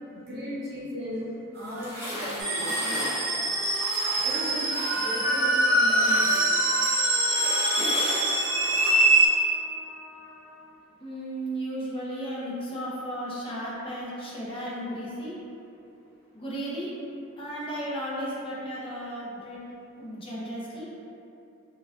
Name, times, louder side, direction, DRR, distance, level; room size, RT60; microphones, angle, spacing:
voice 1, 0.3-1.3 1.5-3.1 4.2-6.4, equal, 45° right, -8 dB, 1.0 m, -36 dB
sound 1, 1.6-5.5 5.8-8.9, equal, 10° right, 0.7 m, -36 dB
Trumpet, 2.4-10.7, left 1 dB, 80° left, 0.4 m, -39 dB
sound 2, 2.4-9.3, right 1 dB, 60° right, 0.7 m, -24 dB
voice 2, 11.0-15.3 16.3-16.9 17.4-19.6 20.0-20.9, equal, 25° left, -7 dB, 0.6 m, -34 dB
4.7 x 2.3 x 2.3 m, 2.7 s
head